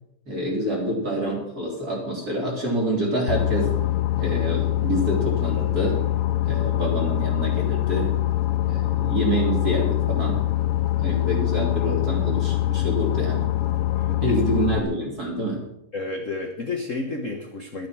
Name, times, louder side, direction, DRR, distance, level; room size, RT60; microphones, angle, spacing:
voice 1, 0.3-3.8 4.2-6.0 6.4-8.1 8.7-10.4 11.0-13.5 14.2-15.6, right 1 dB, 30° right, -1 dB, 4.0 m, -27 dB
Boat Water vehicle, 3.3-14.8, left 14 dB, 80° left, 1.3 m, -24 dB
voice 2, 14.0-14.4 15.9-17.9, left 3 dB, 50° left, 3 dB, 0.9 m, -31 dB
12.5 x 11.0 x 6.2 m, 0.84 s
omnidirectional pair, 3.3 m